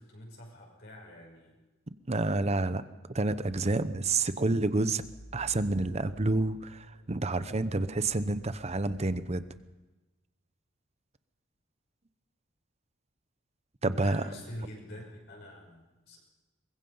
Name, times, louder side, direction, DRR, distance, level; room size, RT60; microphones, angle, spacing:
voice 1, 0.0-1.6 6.9-7.1 13.8-16.2, equal, 55° left, -1 dB, 6.1 m, -45 dB
voice 2, 2.1-2.8 3.1-5.0 5.3-9.4 13.8-14.2, right 2 dB, 30° right, 13 dB, 0.8 m, -29 dB
Dark Server, 3.3-9.6, equal, 85° left, 4.9 m, -54 dB
23.5 x 21.0 x 5.5 m, 1.1 s
head